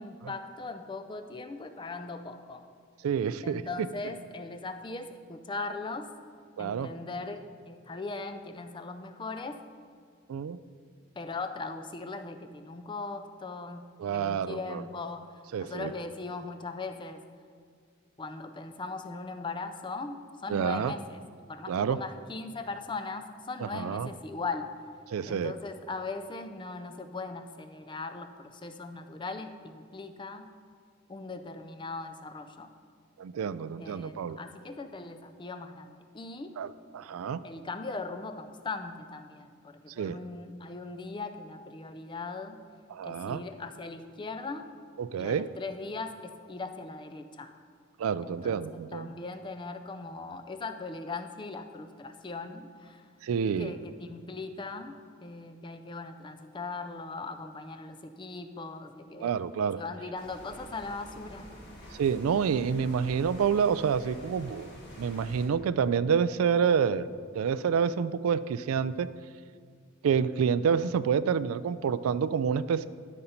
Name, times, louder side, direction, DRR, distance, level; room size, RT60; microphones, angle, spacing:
voice 1, 0.0-2.7 3.4-6.1 6.6-9.6 11.2-13.8 14.1-15.3 15.6-17.2 18.2-21.2 21.5-24.7 25.3-30.5 31.1-32.7 33.8-36.5 37.4-42.6 43.0-44.7 45.2-47.5 48.2-53.1 53.6-59.3 59.8-61.5, left 3 dB, 25° left, 8 dB, 0.4 m, -39 dB
voice 2, 3.0-3.6 6.6-6.9 10.3-10.6 14.0-14.8 15.5-15.9 20.5-20.9 21.7-22.0 23.6-24.1 25.1-25.5 33.2-34.4 36.6-37.4 40.0-40.2 42.9-43.4 45.0-45.5 48.0-49.1 53.2-53.7 59.2-59.8 62.0-69.1 70.0-72.8, right 7 dB, 85° right, 15 dB, 0.3 m, -28 dB
sound 1, 60.2-65.5, equal, 55° left, 1.7 m, -48 dB
12.5 x 5.5 x 4.3 m, 2.1 s
head